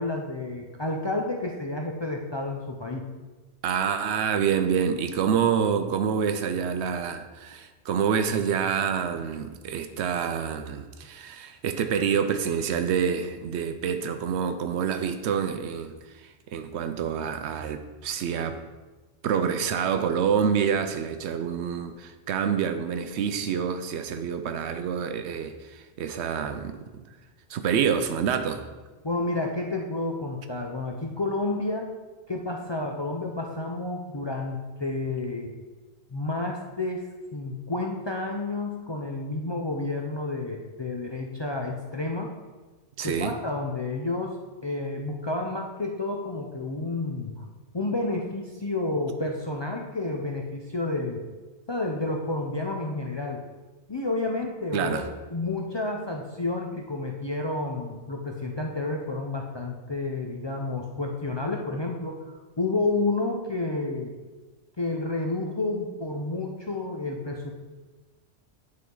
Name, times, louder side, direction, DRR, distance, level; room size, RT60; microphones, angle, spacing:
voice 1, 0.0-3.1 29.0-31.9 32.3-35.5 36.1-42.3 43.0-44.4 44.6-47.4 47.7-51.2 51.7-53.4 53.9-64.1 64.8-67.5, left 2 dB, 40° left, 0.4 m, -30 dB
voice 2, 3.6-18.6 19.2-27.0 27.5-28.7 43.0-43.4 54.7-55.1, right 7 dB, 85° right, 0.9 m, -27 dB
9.6 x 3.8 x 3.8 m
omnidirectional pair, 1.1 m